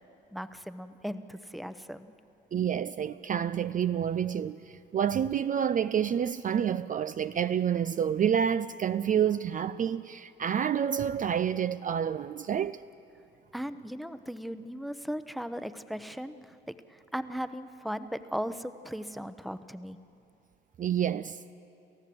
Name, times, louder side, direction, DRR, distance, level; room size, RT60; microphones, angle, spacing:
voice 1, 0.3-2.1 13.5-16.6 16.9-20.0, equal, ahead, 0.8 m, -37 dB
voice 2, 2.5-12.8 20.8-21.4, right 8 dB, 40° right, 0.4 m, -28 dB
29.5 x 14.5 x 7.7 m
cardioid pair, 90°, 20 cm